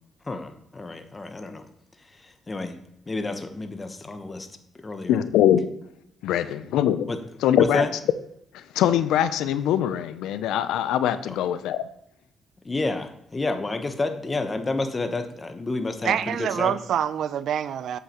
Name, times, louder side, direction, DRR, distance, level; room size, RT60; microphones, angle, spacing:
voice 1, 0.2-1.6 2.1-2.7 3.1-4.5 4.8-5.2 7.1-7.2 7.6-7.9 11.3-11.4 12.6-16.7, left 3 dB, 25° left, 7 dB, 1.0 m, -30 dB
voice 2, 5.1-5.7 6.2-7.1 7.4-7.8 8.8-11.8, left 10 dB, 90° left, 13 dB, 0.5 m, -22 dB
voice 3, 16.0-18.0, right 9 dB, 70° right, 15 dB, 0.4 m, -26 dB
8.1 x 7.8 x 3.0 m, 0.77 s
cardioid pair, 90°, 0 cm